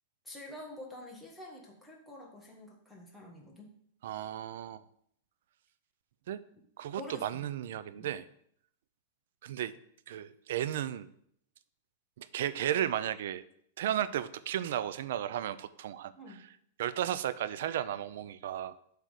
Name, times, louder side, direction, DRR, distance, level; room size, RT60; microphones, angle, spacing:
voice 1, 0.2-3.7 6.9-7.4 7.9-8.1 16.2-16.4, left 1 dB, ahead, -3 dB, 1.3 m, -47 dB
voice 2, 4.0-4.8 6.3-6.4 6.8-8.3 9.4-9.7 10.1-11.1 12.2-13.4 13.8-16.4 16.8-18.8, right 11 dB, 70° right, 15 dB, 0.4 m, -34 dB
7.5 x 3.5 x 6.4 m, 0.68 s
supercardioid pair, 160°, 0 cm